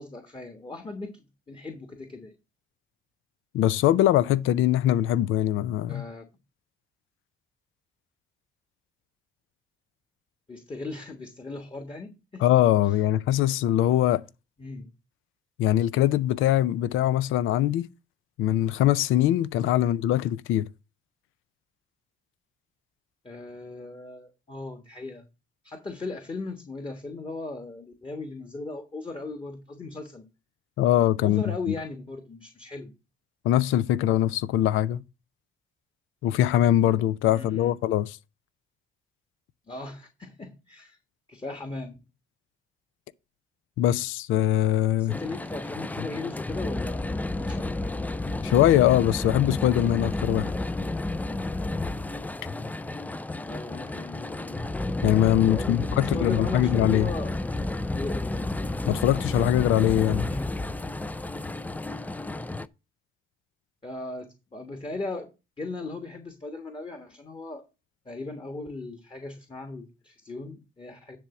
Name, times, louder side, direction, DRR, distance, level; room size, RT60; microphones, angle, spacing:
voice 1, 0.0-2.3 5.9-6.3 10.5-12.4 14.6-14.9 19.8-19.9 23.2-25.2 25.6-30.3 31.2-32.9 37.3-37.7 39.7-41.0 41.3-42.0 45.0-47.7 53.4-54.6 55.5-57.3 57.9-58.5 60.2-60.5 63.8-65.3 65.6-67.6 68.0-71.2, left 3 dB, 25° left, 1.4 m, -38 dB
voice 2, 3.5-6.0 12.4-14.2 15.6-17.9 18.4-20.7 30.8-31.4 33.4-35.0 36.2-38.2 43.8-45.2 48.4-50.5 55.0-57.1 58.9-60.3, left 12 dB, 85° left, 0.5 m, -22 dB
sound 1, 45.1-62.7, left 2 dB, 10° left, 0.4 m, -31 dB
10.5 x 3.4 x 6.9 m
cardioid pair, 90°, 20 cm